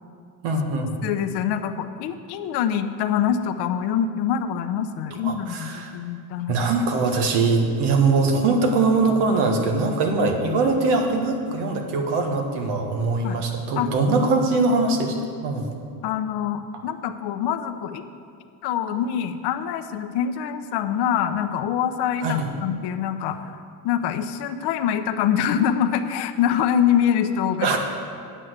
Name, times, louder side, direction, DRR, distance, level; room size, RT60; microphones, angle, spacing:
voice 1, 0.4-1.0 5.2-5.9 6.5-15.2 15.4-15.7 22.2-22.5 27.6-27.8, right 3 dB, 75° right, 3 dB, 1.6 m, -22 dB
voice 2, 1.0-6.5 13.2-13.4 13.8-13.9 16.0-18.0 18.6-23.6 23.8-27.8, left 9 dB, 65° left, 9 dB, 0.8 m, -25 dB
8.9 x 6.4 x 7.9 m, 2.4 s
supercardioid pair, 100°, 42 cm